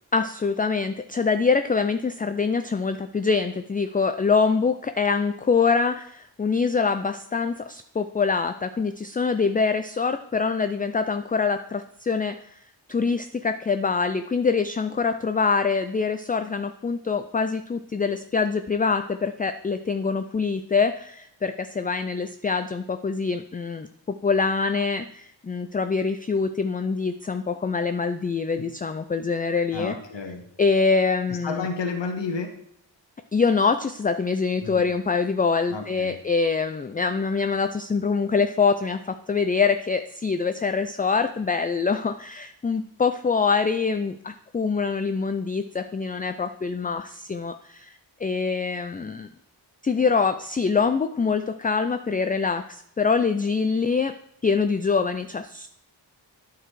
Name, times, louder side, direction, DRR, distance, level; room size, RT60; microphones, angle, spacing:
voice 1, 0.1-12.6 12.9-23.9 24.2-29.9 30.6-31.7 33.3-49.3 49.8-54.1 54.4-55.7, left 5 dB, 20° left, 9 dB, 0.3 m, -24 dB
voice 2, 29.7-30.5 31.3-32.6 34.6-34.9 35.7-36.2, left 4 dB, 70° left, 5 dB, 1.0 m, -31 dB
9.1 x 4.0 x 4.7 m, 0.71 s
wide cardioid pair, 50°, 45 cm